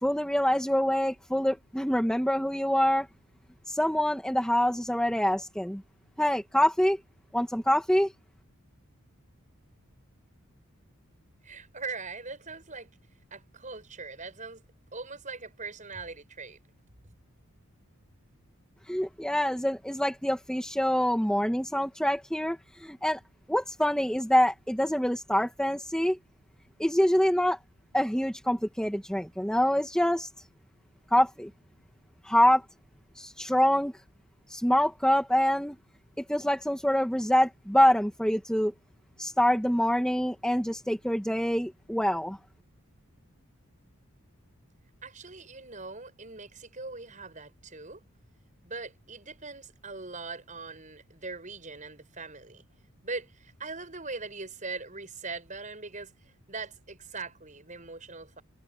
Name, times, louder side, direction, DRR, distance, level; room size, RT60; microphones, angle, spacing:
voice 1, 0.0-3.1 3.7-5.8 6.2-7.0 7.3-8.1 18.9-23.2 23.5-26.2 26.8-27.6 27.9-30.3 31.1-31.5 32.2-32.6 33.2-33.9 34.5-35.8 36.3-38.7 39.2-42.4, equal, 5° left, 2.0 m, -25 dB
voice 2, 11.4-12.9 13.3-14.6 14.9-16.6 45.0-48.0 48.6-52.6 53.0-56.1 56.5-58.4, right 4 dB, 35° right, 7.7 m, -41 dB
head